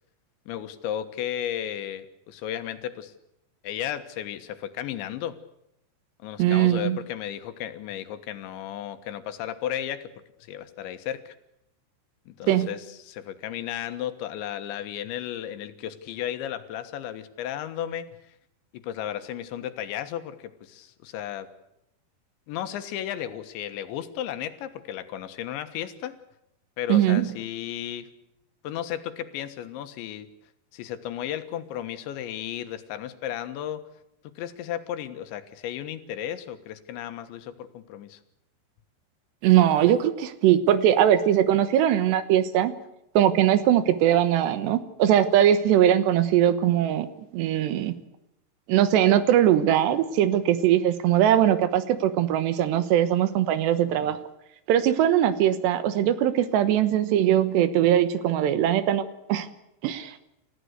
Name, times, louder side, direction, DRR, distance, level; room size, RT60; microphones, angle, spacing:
voice 1, 0.5-3.1 3.6-5.4 6.2-10.1 10.5-11.4 12.3-18.3 18.7-21.5 22.5-26.2 26.8-28.1 28.6-30.3 30.7-33.9 34.4-38.2 54.0-54.2, left 11 dB, 85° left, 10 dB, 3.7 m, -34 dB
voice 2, 6.4-7.0 12.5-12.7 26.9-27.3 39.4-42.7 43.2-47.1 47.3-47.9 48.7-54.2 54.7-59.0 59.3-59.5 59.8-60.2, right 11 dB, 75° right, 12 dB, 3.3 m, -21 dB
29.0 x 15.0 x 8.1 m, 0.83 s
omnidirectional pair, 5.1 m